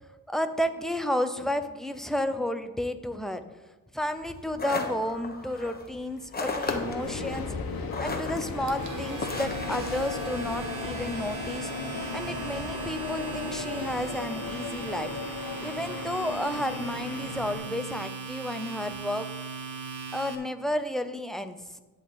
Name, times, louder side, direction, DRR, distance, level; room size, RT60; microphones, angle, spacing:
voice 1, 0.3-3.4 3.9-7.6 8.0-11.7 12.1-15.1 15.6-19.3 20.1-21.8, left 1 dB, ahead, 9 dB, 0.6 m, -32 dB
sound 1, 4.2-10.9, left 3 dB, 25° left, 1.1 m, -36 dB
sound 2, 6.7-17.5, left 4 dB, 75° left, 1.3 m, -36 dB
Domestic sounds home sounds, 8.5-20.3, right 5 dB, 55° right, 1.3 m, -38 dB
11.0 x 3.9 x 7.7 m, 1.2 s
wide cardioid pair, 115°, 35 cm